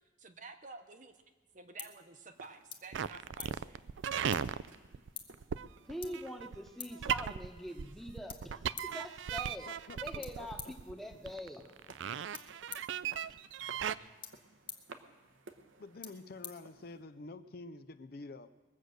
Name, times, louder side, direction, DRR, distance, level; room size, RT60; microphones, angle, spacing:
voice 1, 0.2-1.2 1.5-3.9 13.6-14.2, right 3 dB, 40° right, 7 dB, 0.9 m, -52 dB
sound 1, 1.0-17.3, left 7 dB, 25° left, 0.9 m, -53 dB
sound 2, 2.3-17.0, right 3 dB, 90° right, 1.0 m, -59 dB
sound 3, 2.9-13.9, right 8 dB, 75° right, 0.4 m, -37 dB
voice 2, 5.8-9.7 10.0-11.8, equal, ahead, 4 dB, 1.1 m, -44 dB
voice 3, 9.7-10.5 15.8-18.5, left 3 dB, 50° left, 12 dB, 0.5 m, -48 dB
21.0 x 8.0 x 6.4 m, 1.3 s
head